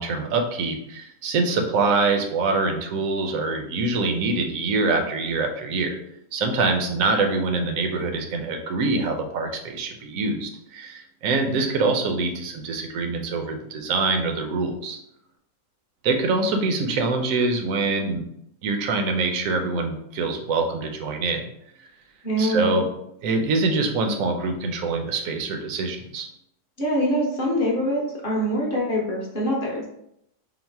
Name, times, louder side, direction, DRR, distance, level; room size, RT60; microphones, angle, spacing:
voice 1, 0.0-6.0 6.3-15.0 16.0-18.2 18.6-21.4 22.4-22.9 23.2-26.3, right 3 dB, 70° right, 3 dB, 0.9 m, -24 dB
voice 2, 22.2-22.7 26.8-29.9, equal, 40° left, -3 dB, 0.9 m, -24 dB
3.9 x 2.1 x 4.4 m, 0.76 s
omnidirectional pair, 1.7 m